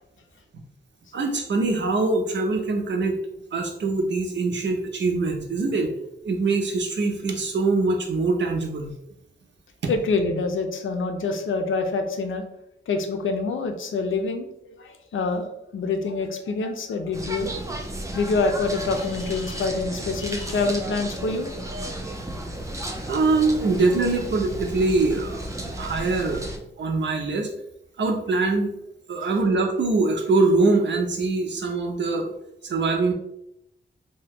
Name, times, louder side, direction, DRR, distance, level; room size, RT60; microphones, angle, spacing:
voice 1, 1.1-3.2 3.5-5.9 6.2-8.9 23.1-25.5 25.8-26.4 26.8-27.5 28.0-28.7 29.1-32.3 32.6-33.1, right 3 dB, 65° right, 3 dB, 0.6 m, -23 dB
voice 2, 9.9-12.4 12.9-15.5 15.7-17.5 18.1-21.5, left 3 dB, 85° left, 6 dB, 0.5 m, -26 dB
sound 1, 17.1-26.6, right 1 dB, 15° right, 0.4 m, -34 dB
2.8 x 2.2 x 3.4 m, 0.82 s
wide cardioid pair, 115°, 20 cm